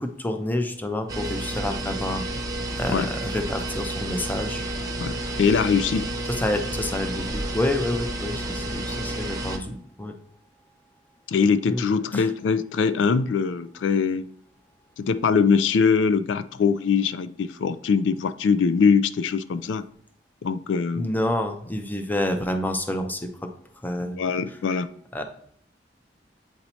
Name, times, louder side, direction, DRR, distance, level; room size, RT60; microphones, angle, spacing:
voice 1, 0.0-2.2 2.7-4.6 6.3-10.1 11.7-11.8 12.1-12.3 21.0-23.5 23.8-24.2 25.1-25.2, left 1 dB, 10° left, 6 dB, 0.6 m, -28 dB
sound 1, 1.1-9.6, right 1 dB, 20° right, 0.8 m, -30 dB
voice 2, 5.0-6.1 11.3-14.3 15.0-19.8 20.4-21.1 24.0-24.9, left 5 dB, 85° left, 13 dB, 0.3 m, -22 dB
7.9 x 2.7 x 4.3 m, 0.64 s
head